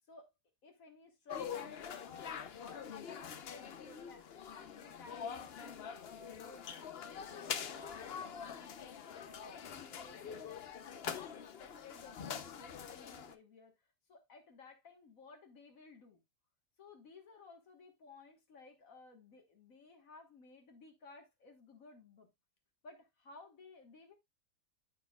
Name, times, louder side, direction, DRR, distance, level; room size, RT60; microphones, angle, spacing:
voice 1, 0.6-2.9 3.2-10.5 11.2-12.2 12.4-16.2 16.8-22.3 22.8-24.1, left 3 dB, 70° left, 1.8 m, -57 dB
sound 1, 1.3-13.3, left 7 dB, 50° left, 0.9 m, -45 dB
14.0 x 4.6 x 2.3 m
omnidirectional pair, 1.5 m